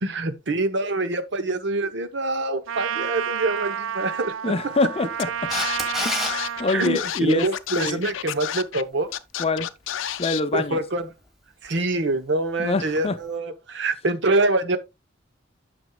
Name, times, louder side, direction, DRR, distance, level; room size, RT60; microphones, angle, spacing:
voice 1, 0.0-4.5 6.7-9.1 10.5-11.1 11.6-14.8, right 2 dB, 65° right, 0.9 m, -25 dB
Trumpet, 2.7-7.0, right 9 dB, 90° right, 0.4 m, -30 dB
voice 2, 4.4-5.5 6.0-7.5 7.8-8.0 9.4-9.7 10.2-10.8 12.6-13.2, left 3 dB, 30° left, 0.6 m, -25 dB
Scratching (performance technique), 5.2-5.3 5.5-8.8 9.1-10.4, left 10 dB, 80° left, 0.5 m, -30 dB
Camera, 5.5-6.3 13.0-13.1, left 1 dB, ahead, 1.4 m, -27 dB
9.4 x 6.2 x 2.3 m
head